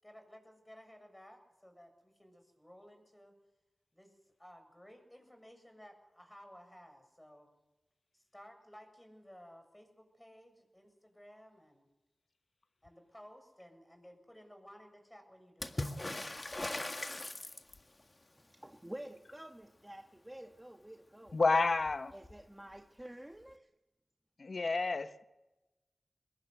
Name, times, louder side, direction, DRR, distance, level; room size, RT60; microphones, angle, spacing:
voice 1, 0.0-3.4 3.9-7.5 8.1-11.9 12.8-17.1, equal, 15° left, 7.4 m, -57 dB
Water / Splash splatter, 15.6-18.0 21.3-21.4 21.6-22.4 23.5-23.6, left 2 dB, 40° left, 1.8 m, -40 dB
voice 2, 18.4-21.4 22.1-23.7, right 1 dB, 15° right, 1.4 m, -49 dB
voice 3, 21.3-22.1 24.4-25.2, left 3 dB, 65° left, 1.2 m, -30 dB
23.5 x 20.5 x 8.1 m
cardioid pair, 45°, 0 cm